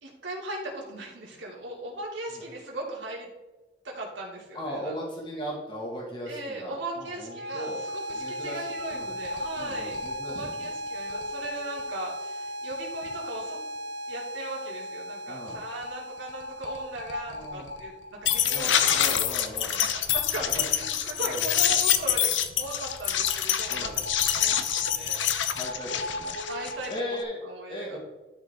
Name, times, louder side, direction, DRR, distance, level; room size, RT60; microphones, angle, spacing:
voice 1, 0.0-3.3 3.8-4.9 6.3-10.0 10.3-13.6 14.1-19.8 20.1-23.9 24.4-25.2 26.5-27.2 27.4-28.0, right 2 dB, 85° right, -3 dB, 2.8 m, -38 dB
voice 2, 4.5-7.9 8.1-9.1 9.6-10.7 15.3-15.6 17.3-17.7 18.5-19.8 20.4-20.5 20.8-21.5 23.7-24.0 25.5-26.3 26.9-28.0, equal, 25° left, -3 dB, 2.0 m, -38 dB
sound 1, 7.2-18.2, equal, 60° right, 0.6 m, -37 dB
sound 2, 8.1-8.2 8.5-8.6 8.8-12.0 12.7-12.8 13.1-13.2 13.4-13.5 15.5-15.6 15.8-15.9 16.2-27.2, left 9 dB, 85° left, 0.7 m, -27 dB
12.5 x 5.0 x 3.7 m, 1.2 s
head